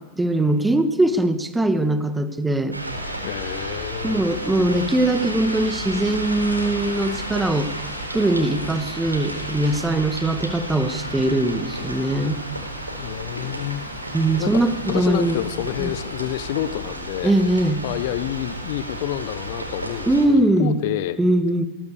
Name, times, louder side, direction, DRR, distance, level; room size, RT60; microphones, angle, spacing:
voice 1, 0.2-2.8 4.0-7.7 8.1-12.4 14.1-15.4 15.8-15.9 17.2-17.8 20.1-20.8 21.2-21.7, right 1 dB, 10° right, 10 dB, 1.8 m, -21 dB
sound 1, 2.7-20.3, right 1 dB, 85° right, 4.0 m, -32 dB
voice 2, 3.2-4.2 13.0-13.8 14.4-14.5 14.9-17.3 17.8-21.2, left 13 dB, 50° left, 14 dB, 1.0 m, -28 dB
sound 2, 4.3-16.8, left 2 dB, 75° left, 4.5 m, -42 dB
20.5 x 20.0 x 6.8 m, 1.2 s
figure-of-eight pair, 90°, 0 cm